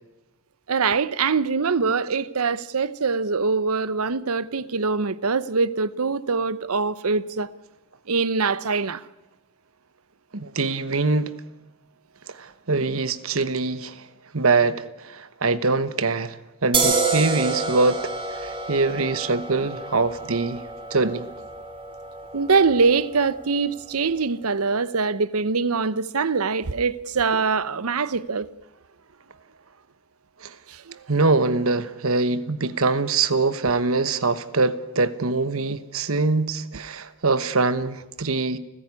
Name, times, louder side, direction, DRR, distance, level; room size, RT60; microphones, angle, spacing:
voice 1, 0.7-7.5 8.1-9.0 22.3-28.5 30.7-31.0, right 4 dB, 80° right, 0.9 m, -23 dB
voice 2, 10.3-11.4 12.3-14.1 14.3-20.6 20.9-21.3 30.4-30.5 31.1-38.6, right 3 dB, 65° right, 1.2 m, -23 dB
sound 1, 16.7-24.0, right 3 dB, 25° right, 3.6 m, -29 dB
29.5 x 15.5 x 9.8 m
head